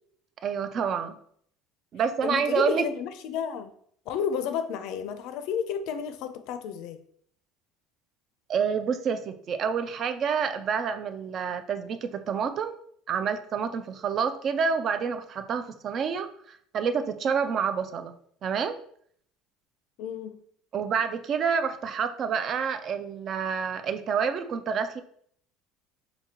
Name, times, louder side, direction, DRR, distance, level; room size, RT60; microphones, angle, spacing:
voice 1, 0.4-1.2 1.9-2.9 8.5-12.8 13.1-18.1 18.4-18.8 20.7-25.0, right 6 dB, 35° right, 9 dB, 0.4 m, -28 dB
voice 2, 2.2-3.7 4.1-7.0 20.0-20.4, left 7 dB, 60° left, 10 dB, 0.5 m, -31 dB
5.1 x 2.6 x 2.9 m, 0.63 s
cardioid pair, 145°, 0 cm